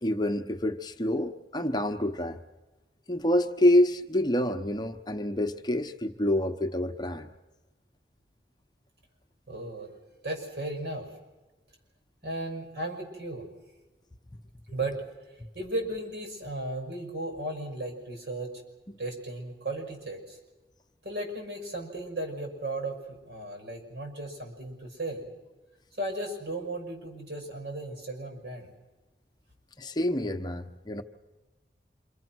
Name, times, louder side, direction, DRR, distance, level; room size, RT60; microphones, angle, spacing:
voice 1, 0.0-2.4 3.1-7.3 18.9-19.0 29.8-31.0, left 1 dB, 25° left, 7 dB, 0.9 m, -27 dB
voice 2, 9.5-10.0 10.2-11.1 12.2-13.5 14.7-15.0 15.5-18.6 19.0-20.4 21.0-25.3 26.0-28.7, right 2 dB, 70° right, 3 dB, 6.5 m, -35 dB
27.5 x 25.5 x 6.2 m, 1.1 s
head